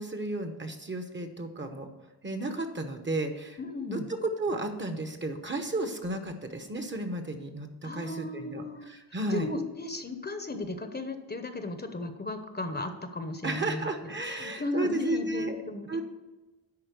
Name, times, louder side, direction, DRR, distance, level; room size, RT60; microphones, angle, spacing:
voice 1, 0.0-1.9 2.2-3.6 3.9-9.5 13.4-15.6 15.9-16.0, right 2 dB, 25° right, 7 dB, 1.0 m, -33 dB
voice 2, 3.6-4.1 7.8-8.9 9.3-16.0, left 2 dB, 25° left, 7 dB, 0.9 m, -35 dB
10.5 x 4.2 x 6.8 m, 1.1 s
cardioid pair, 100°, 42 cm